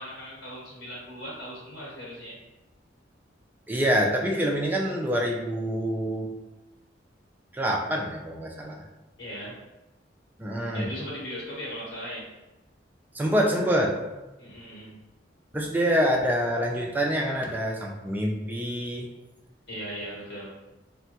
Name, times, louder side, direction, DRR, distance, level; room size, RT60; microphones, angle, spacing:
voice 1, 0.0-2.4 9.2-9.6 10.7-12.3 14.4-15.0 19.7-20.5, equal, 80° left, -7 dB, 1.0 m, -38 dB
voice 2, 3.7-6.3 7.5-8.8 10.4-10.9 13.1-13.9 15.5-19.1, equal, 10° right, -1 dB, 0.3 m, -26 dB
3.3 x 2.1 x 2.8 m, 1.0 s
head